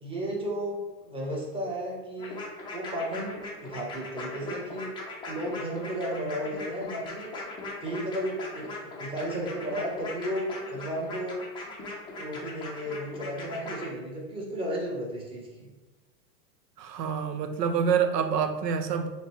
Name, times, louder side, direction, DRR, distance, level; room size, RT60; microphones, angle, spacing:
voice 1, 0.0-2.4 2.7-4.9 5.2-7.3 7.8-11.4 12.2-15.7, equal, 10° right, -3 dB, 0.9 m, -34 dB
sound 1, 2.2-13.9, left 2 dB, 10° left, 0.4 m, -39 dB
voice 2, 16.8-19.1, right 7 dB, 85° right, 7 dB, 0.7 m, -27 dB
5.8 x 2.2 x 3.0 m, 1.1 s
hypercardioid pair, 130°, 48 cm